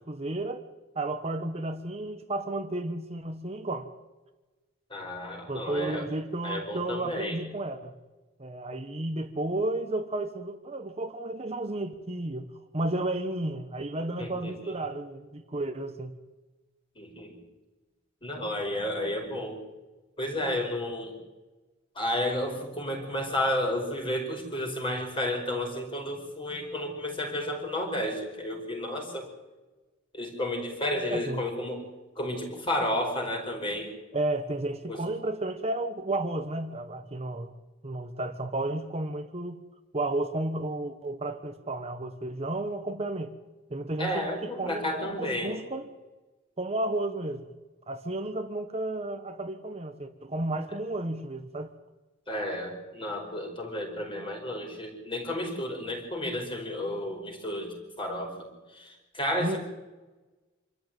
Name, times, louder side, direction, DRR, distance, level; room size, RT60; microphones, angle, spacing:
voice 1, 0.1-0.6 0.9-3.9 5.5-7.9 8.4-12.5 12.7-16.1 31.1-31.4 34.1-37.5 37.8-39.6 39.9-43.3 43.7-45.9 46.6-47.5 47.9-51.7 59.4-59.6, right 2 dB, 30° right, 6 dB, 1.2 m, -32 dB
voice 2, 4.9-6.1 6.4-7.4 14.2-14.7 17.0-17.4 18.2-19.6 20.2-21.1 22.0-29.3 30.1-31.8 32.2-33.9 34.9-35.0 44.0-45.6 52.3-59.6, left 1 dB, 25° left, 3 dB, 5.1 m, -32 dB
26.5 x 13.5 x 9.2 m, 1.2 s
head